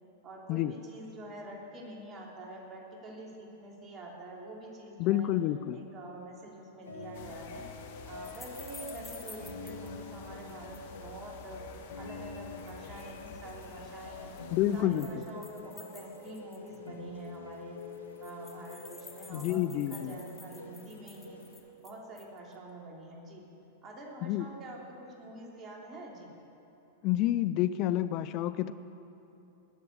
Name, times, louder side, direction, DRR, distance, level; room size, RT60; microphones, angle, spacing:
voice 1, 0.2-5.3 5.7-7.6 8.0-11.6 12.0-14.3 14.7-17.8 18.2-21.4 21.8-23.5 23.8-26.3, right 1 dB, 30° right, -2 dB, 3.3 m, -46 dB
voice 2, 5.0-5.8 14.5-15.1 19.3-20.2 24.2-24.5 27.0-28.7, left 13 dB, 45° left, 13 dB, 0.5 m, -29 dB
sound 1, 6.8-21.6, left 2 dB, 90° left, 2.5 m, -46 dB
sound 2, 7.1-14.8, left 5 dB, 65° left, 1.7 m, -50 dB
sound 3, 8.2-9.9 10.2-11.0 12.4-13.1 13.5-13.7 14.4-16.9 17.2-17.3 17.5-17.6 17.8-22.4, left 4 dB, 15° left, 1.8 m, -52 dB
20.0 x 7.7 x 8.9 m, 2.9 s
hypercardioid pair, 105°, 0 cm